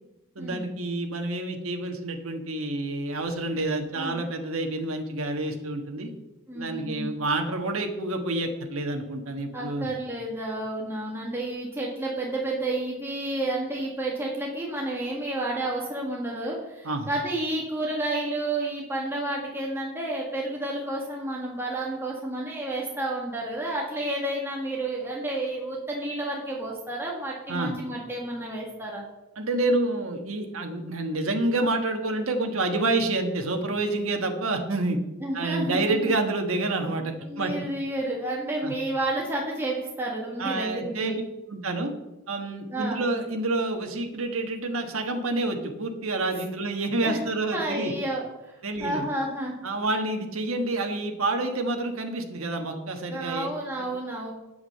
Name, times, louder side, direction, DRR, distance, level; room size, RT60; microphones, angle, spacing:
voice 1, 0.3-6.1 6.5-9.9 16.8-17.1 27.5-27.8 29.4-35.0 35.3-37.5 38.6-38.7 40.4-41.1 41.5-41.9 42.3-47.9 48.6-49.1 49.6-53.5, right 2 dB, 65° right, 4 dB, 1.5 m, -28 dB
voice 2, 6.5-7.1 9.5-29.0 35.2-35.8 36.0-36.1 37.2-41.2 42.7-43.0 47.0-47.2 47.5-49.6 53.1-54.3, right 1 dB, 10° right, -3 dB, 1.8 m, -31 dB
8.6 x 8.3 x 6.7 m, 0.98 s
head